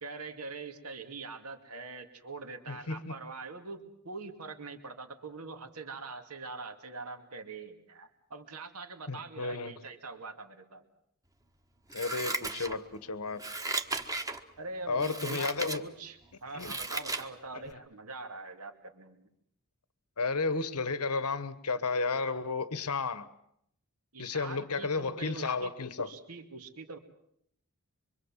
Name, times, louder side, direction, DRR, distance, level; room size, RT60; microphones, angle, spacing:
voice 1, 0.0-10.8 14.6-19.3 24.1-27.0, right 3 dB, 80° right, 2.5 m, -44 dB
voice 2, 2.7-3.1 9.1-9.7 11.9-13.4 14.9-15.9 16.5-16.8 17.5-17.6 20.2-23.3 24.2-26.1, left 4 dB, 85° left, 1.3 m, -32 dB
Scissors, 11.9-13.0 13.4-14.4 15.0-15.8 16.2-17.3 17.7-17.8, right 2 dB, 15° right, 1.4 m, -36 dB
25.0 x 25.0 x 7.4 m
head